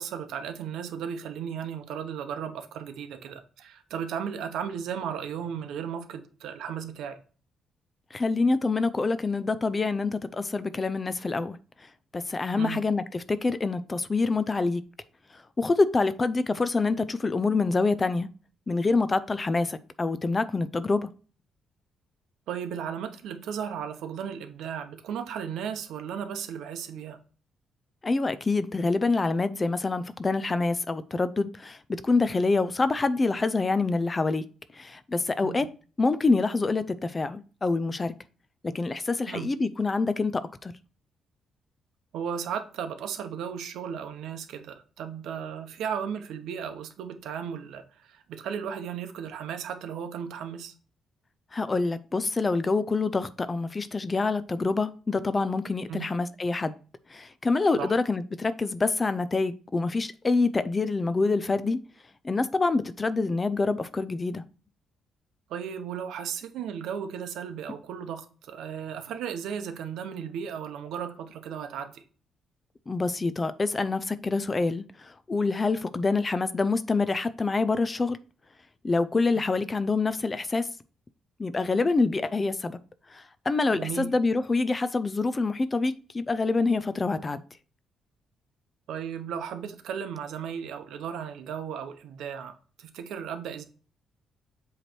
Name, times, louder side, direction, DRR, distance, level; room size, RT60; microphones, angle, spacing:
voice 1, 0.0-7.2 12.5-12.8 22.5-27.2 35.4-35.7 39.3-39.5 42.1-50.7 55.9-56.1 57.8-57.9 65.5-72.0 83.7-84.1 88.9-93.6, right 8 dB, 85° right, 0.9 m, -35 dB
voice 2, 8.1-11.6 12.1-14.8 15.3-18.3 18.7-21.1 28.0-34.4 34.7-35.7 36.0-38.1 38.7-40.7 51.5-56.7 57.1-61.8 62.2-64.4 72.9-78.2 78.8-80.7 81.4-82.8 83.1-87.4, left 3 dB, 20° left, 0.4 m, -26 dB
7.7 x 3.2 x 4.4 m
cardioid pair, 175°, 0 cm